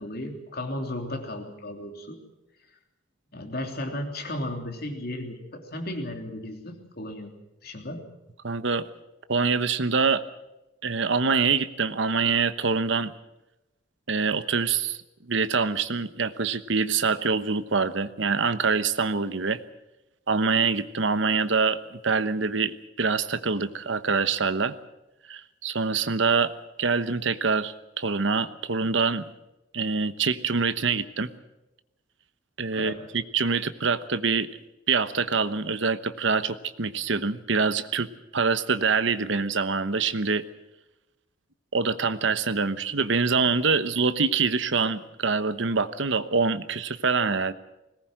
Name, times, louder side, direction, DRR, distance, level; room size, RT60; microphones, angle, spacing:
voice 1, 0.0-2.2 3.3-7.3 7.6-8.0 32.7-33.1, left 1 dB, 50° left, 4 dB, 3.2 m, -35 dB
voice 2, 8.4-8.9 9.3-10.2 10.8-13.1 14.1-15.0 15.3-19.6 20.3-24.7 25.3-26.5 26.8-29.3 29.7-31.3 32.6-34.5 34.9-40.4 41.7-47.5, right 4 dB, 65° right, 12 dB, 1.1 m, -25 dB
21.0 x 18.5 x 7.7 m, 0.97 s
head